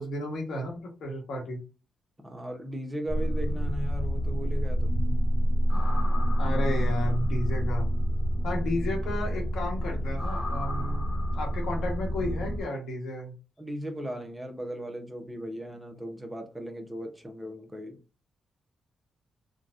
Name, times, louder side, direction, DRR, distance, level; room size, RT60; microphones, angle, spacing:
voice 1, 0.0-1.6 6.4-7.9 8.4-11.1 11.3-13.3, left 1 dB, 80° left, 0 dB, 1.2 m, -33 dB
voice 2, 2.2-5.1 6.4-6.6 8.4-8.6 13.6-18.0, equal, 15° right, 4 dB, 0.8 m, -37 dB
sound 1, 3.1-12.6, equal, 50° left, 1.2 m, -27 dB
3.8 x 2.3 x 2.5 m, 0.32 s
cardioid pair, 75°, 0 cm